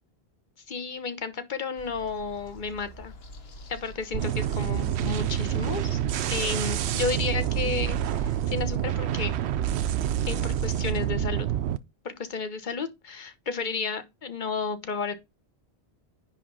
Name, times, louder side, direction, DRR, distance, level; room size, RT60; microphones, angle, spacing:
voice 1, 0.7-3.1 3.7-6.0 6.3-9.3 10.3-11.5 12.0-15.1, left 4 dB, 50° left, 1.2 m, -32 dB
sound 1, 1.8-7.6, left 1 dB, 70° left, 1.4 m, -47 dB
sound 2, 4.1-11.8, right 10 dB, 85° right, 0.9 m, -27 dB
9.9 x 3.3 x 5.5 m
omnidirectional pair, 1.1 m